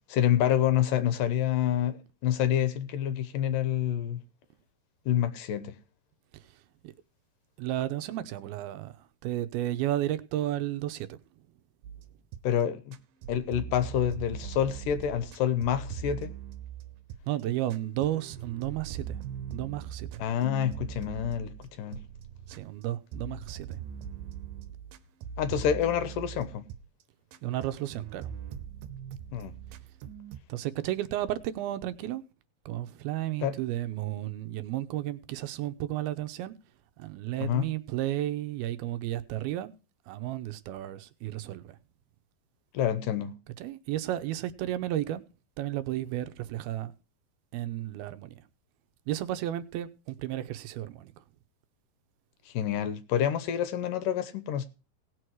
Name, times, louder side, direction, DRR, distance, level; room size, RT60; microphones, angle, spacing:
voice 1, 0.1-2.0 2.2-4.2 5.1-5.7 12.4-13.0 13.3-16.3 20.2-21.5 21.8-22.0 25.4-26.6 29.3-29.5 33.4-33.5 37.4-37.7 42.7-43.3 52.5-54.7, left 10 dB, 75° left, 2.3 m, -27 dB
voice 2, 7.6-11.2 17.3-19.2 19.5-20.2 22.5-23.8 27.4-28.3 30.5-32.2 32.7-36.5 37.0-39.7 40.1-41.8 43.6-45.2 45.6-46.9 47.5-48.4 49.1-51.1, right 13 dB, 90° right, 2.8 m, -33 dB
sound 1, 11.8-12.6 12.9-17.4 17.7-22.8 23.1-27.0 27.3-30.4, right 8 dB, 70° right, 2.2 m, -41 dB
18.0 x 6.4 x 4.7 m
omnidirectional pair, 4.4 m